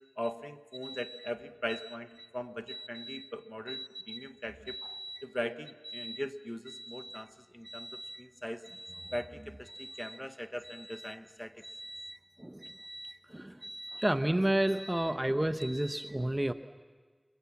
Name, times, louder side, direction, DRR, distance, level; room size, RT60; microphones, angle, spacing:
voice 1, 0.2-4.8 5.2-8.6 9.1-11.6, equal, 15° left, 10 dB, 1.0 m, -41 dB
voice 2, 2.7-3.3 3.7-4.3 4.7-5.2 5.9-6.2 6.7-7.2 7.6-8.3 8.7-9.1 9.7-10.2 11.6-16.5, right 1 dB, 25° right, 10 dB, 0.9 m, -34 dB
27.5 x 22.5 x 7.3 m, 1.4 s
wide cardioid pair, 40°, 0 cm